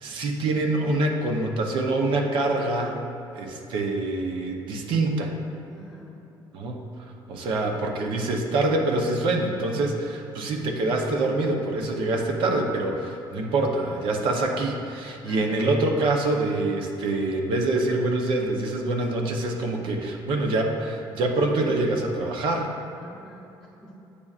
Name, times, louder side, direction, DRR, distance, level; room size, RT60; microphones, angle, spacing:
voice 1, 0.0-3.0 3.3-5.3 6.5-6.8 7.3-22.7, right 2 dB, 70° right, 2 dB, 0.7 m, -25 dB
voice 2, 5.7-6.2 7.4-7.9 15.2-15.7 23.0-23.4 23.8-23.9, right 1 dB, 5° right, -7 dB, 0.8 m, -47 dB
8.4 x 5.3 x 2.4 m, 2.8 s
cardioid pair, 135°, 9 cm